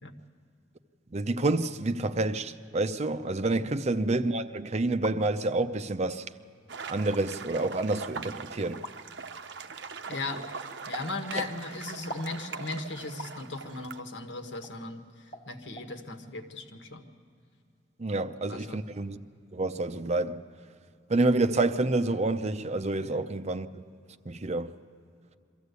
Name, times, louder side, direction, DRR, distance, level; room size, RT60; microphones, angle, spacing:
voice 1, 1.1-6.3 6.9-8.8 11.3-11.5 18.0-19.2 19.5-20.4 21.1-23.8 24.3-24.7, right 2 dB, 35° right, 0.6 m, -28 dB
sound 1, 4.8-5.2 6.1-6.2 7.0-7.2 8.8-9.0 10.9-11.1 12.1-12.3 13.2-13.4 14.6-14.7 15.3-15.5 15.8-15.9, equal, 50° left, 1.4 m, -41 dB
sound 2, 6.7-14.0, right 5 dB, 70° right, 0.8 m, -42 dB
voice 2, 10.1-10.5 10.9-17.0 18.1-18.8 23.0-23.2, left 2 dB, 75° left, 1.5 m, -38 dB
23.0 x 14.5 x 8.2 m
head